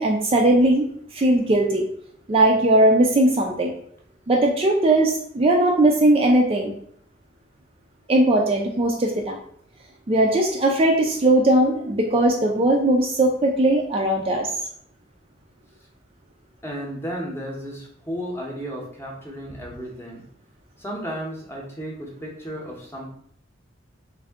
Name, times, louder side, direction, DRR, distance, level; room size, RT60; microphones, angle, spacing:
voice 1, 0.0-1.9 2.3-3.7 4.3-6.7 8.1-9.4 10.1-14.5, right 1 dB, 30° right, 1 dB, 0.4 m, -19 dB
voice 2, 16.6-20.2 20.8-23.1, equal, 15° left, -1 dB, 0.8 m, -33 dB
3.5 x 2.6 x 3.5 m, 0.65 s
head